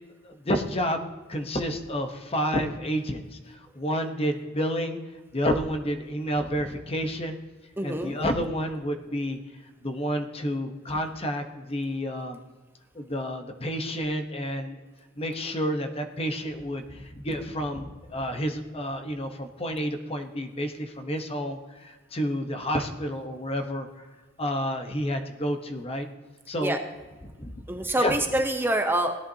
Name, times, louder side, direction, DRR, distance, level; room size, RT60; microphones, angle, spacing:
voice 1, 0.2-3.3 3.7-5.0 5.3-7.4 7.8-9.4 9.8-12.4 13.0-14.8 15.2-23.9 24.4-26.1 26.5-26.8 27.4-27.5 28.0-28.1, equal, 30° left, 6 dB, 1.0 m, -30 dB
voice 2, 7.8-8.2 26.6-26.8 27.7-29.2, right 1 dB, 10° right, 5 dB, 0.7 m, -26 dB
17.0 x 11.0 x 2.8 m, 1.3 s
head